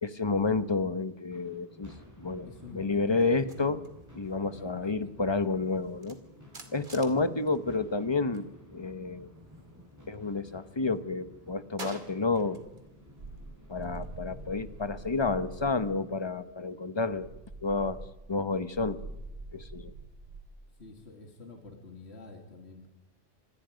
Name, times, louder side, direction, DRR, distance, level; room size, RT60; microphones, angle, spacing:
voice 1, 0.0-2.5 2.7-3.8 4.1-6.2 6.7-8.5 8.7-9.3 10.1-12.6 13.7-17.3 17.6-19.1 19.5-19.9, left 3 dB, 25° left, 12 dB, 1.0 m, -30 dB
sound 1, 1.3-17.6, left 1 dB, 15° right, 8.0 m, -54 dB
voice 2, 2.4-3.4 4.5-5.1 20.7-22.9, left 3 dB, 65° left, 3 dB, 2.9 m, -47 dB
sound 2, 3.2-8.5 8.8-10.4 10.8-12.9 13.2-16.0, right 2 dB, 45° right, 2.6 m, -51 dB
sound 3, 12.7-15.9 17.1-20.5, right 2 dB, 75° right, 3.3 m, -45 dB
26.5 x 20.0 x 5.2 m, 0.99 s
omnidirectional pair, 1.2 m